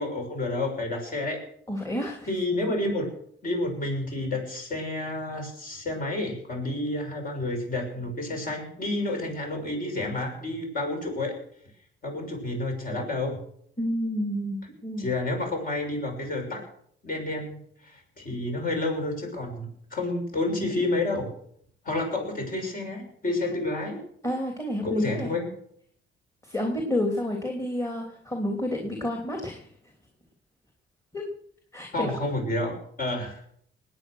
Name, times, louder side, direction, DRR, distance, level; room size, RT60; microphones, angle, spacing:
voice 1, 0.0-1.4 2.3-3.1 3.4-11.4 12.0-13.4 15.0-16.7 17.0-17.6 17.8-21.3 21.8-24.0 24.8-25.4 31.9-33.4, left 2 dB, 45° left, 2 dB, 6.4 m, -30 dB
voice 2, 1.7-2.3 13.8-15.1 24.2-25.3 26.4-29.7 31.1-31.2 31.7-32.1, left 1 dB, 15° left, 1 dB, 3.2 m, -30 dB
20.0 x 9.1 x 6.4 m, 0.66 s
cardioid pair, 90°, 20 cm